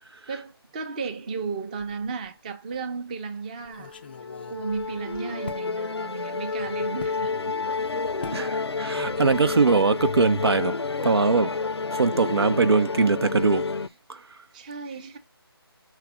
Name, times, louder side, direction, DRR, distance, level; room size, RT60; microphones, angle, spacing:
voice 1, 0.3-4.0 4.5-7.3 14.5-15.2, right 5 dB, 20° right, 0.7 m, -34 dB
sound 1, 1.8-2.4 2.7-2.8 3.6-5.7 7.0-7.2 8.2-8.5 8.8-9.1 9.4-9.6, left 5 dB, 25° left, 0.4 m, -42 dB
Musical instrument, 3.8-13.9, left 4 dB, 90° left, 0.6 m, -30 dB
voice 2, 8.3-10.7 11.0-11.5 11.9-13.7 14.1-14.2, right 4 dB, 80° right, 0.8 m, -22 dB
6.1 x 3.3 x 4.9 m
figure-of-eight pair, 160°, 13 cm